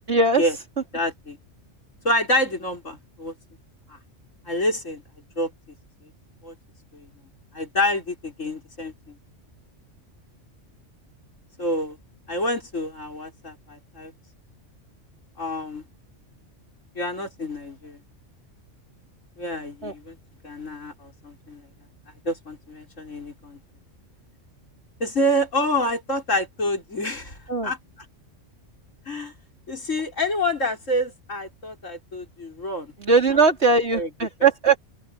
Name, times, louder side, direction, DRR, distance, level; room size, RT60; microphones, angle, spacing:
voice 1, 0.1-0.4 19.8-19.9 27.5-27.7 33.0-34.8, right 4 dB, 60° right, 3.7 m, -19 dB
voice 2, 0.9-1.4 2.0-3.3 3.9-4.0 4.5-5.0 5.4-5.5 6.4-6.5 6.9-7.1 7.5-9.2 11.6-12.0 12.3-14.1 15.4-15.8 16.9-18.0 19.4-20.2 20.4-21.7 22.2-23.6 25.0-27.8 29.1-29.3 29.7-32.9 33.9-34.1 34.4-34.5, left 1 dB, 85° left, 5.7 m, -27 dB
omnidirectional pair, 1.3 m